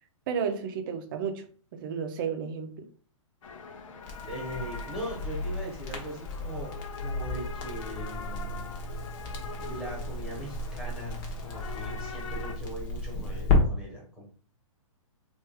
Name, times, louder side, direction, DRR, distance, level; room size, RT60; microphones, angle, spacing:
voice 1, 0.3-1.5 1.7-2.8, right 6 dB, 40° right, 6 dB, 0.6 m, -32 dB
sound 1, 3.4-12.5, left 5 dB, 70° left, 0.8 m, -43 dB
Crackle, 4.0-13.6, left 2 dB, 35° left, 1.1 m, -33 dB
voice 2, 4.2-8.7 9.6-14.2, right 1 dB, 5° right, -4 dB, 1.3 m, -40 dB
3.3 x 2.6 x 3.3 m, 0.44 s
hypercardioid pair, 150°, 17 cm